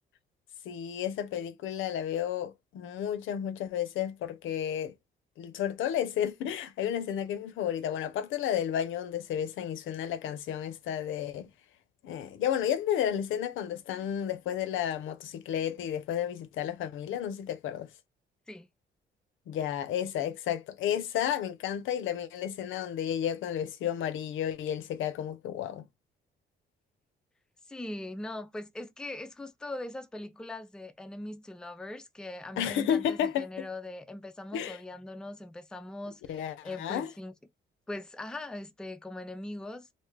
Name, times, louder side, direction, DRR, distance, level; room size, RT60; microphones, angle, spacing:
voice 1, 0.6-4.9 5.4-11.5 12.0-17.9 19.5-25.8 32.6-33.7 34.5-34.8 36.3-37.1, left 9 dB, 80° left, 0.6 m, -32 dB
voice 2, 27.7-37.3 37.9-39.9, left 2 dB, 5° left, 0.4 m, -41 dB
2.7 x 2.3 x 3.2 m
cardioid pair, 90°, 20 cm